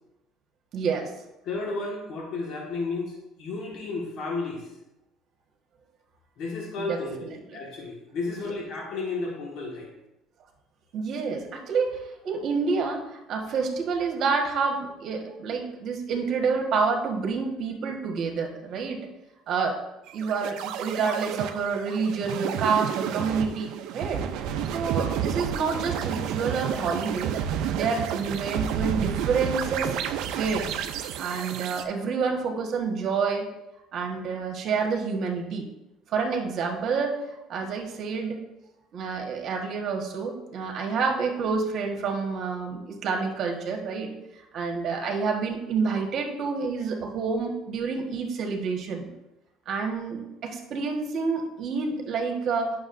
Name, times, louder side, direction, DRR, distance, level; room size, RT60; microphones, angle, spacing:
voice 1, 0.7-1.1 6.8-7.3 10.9-19.0 19.5-19.8 20.1-24.2 24.7-27.3 27.7-30.0 30.3-30.7 31.2-33.5 33.9-35.6 36.1-37.2 37.5-38.4 38.9-44.1 44.5-49.1 49.7-52.7, right 5 dB, 55° right, 1 dB, 1.4 m, -28 dB
voice 2, 1.4-4.7 6.4-9.9, left 3 dB, 60° left, -2 dB, 1.7 m, -33 dB
sound 1, 20.1-31.8, right 9 dB, 75° right, 0.5 m, -30 dB
9.4 x 6.2 x 2.6 m, 0.94 s
cardioid pair, 115°, 0 cm